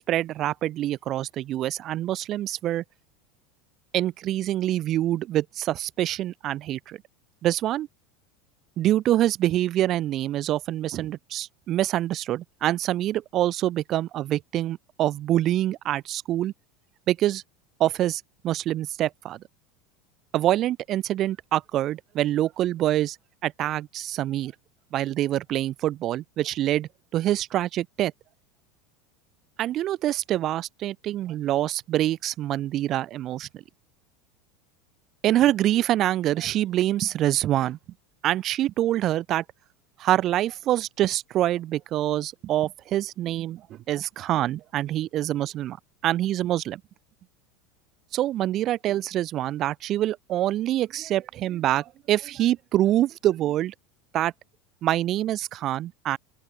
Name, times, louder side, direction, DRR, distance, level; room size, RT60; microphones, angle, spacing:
voice 1, 0.0-2.8 3.9-7.0 7.4-7.9 8.8-16.5 17.1-17.4 17.8-19.4 20.3-23.2 23.4-24.5 24.9-28.1 29.6-33.6 35.2-37.8 38.2-39.4 40.0-45.8 46.0-46.8 48.1-53.7 54.1-54.3 54.8-56.2, right 13 dB, 45° right, 5.9 m, -25 dB
open air
supercardioid pair, 115°, 0 cm